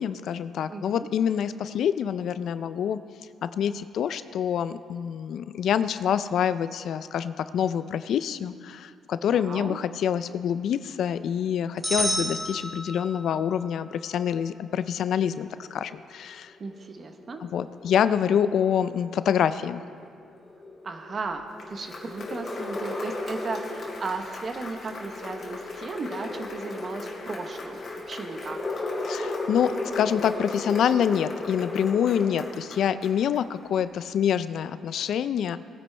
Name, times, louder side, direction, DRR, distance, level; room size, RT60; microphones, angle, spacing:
voice 1, 0.0-3.0 3.4-16.5 17.4-19.8 29.0-35.6, left 8 dB, 70° left, 13 dB, 0.4 m, -26 dB
voice 2, 0.7-1.1 9.2-9.8 16.6-17.4 20.8-28.6, right 4 dB, 40° right, 6 dB, 1.0 m, -36 dB
sound 1, 11.8-13.4, equal, 10° right, 2.6 m, -29 dB
sound 2, 15.2-32.5, left 2 dB, 30° left, 2.6 m, -36 dB
Applause, 21.3-33.9, left 2 dB, 50° left, 2.3 m, -43 dB
19.0 x 9.7 x 3.3 m, 2.2 s
cardioid pair, 90°, 0 cm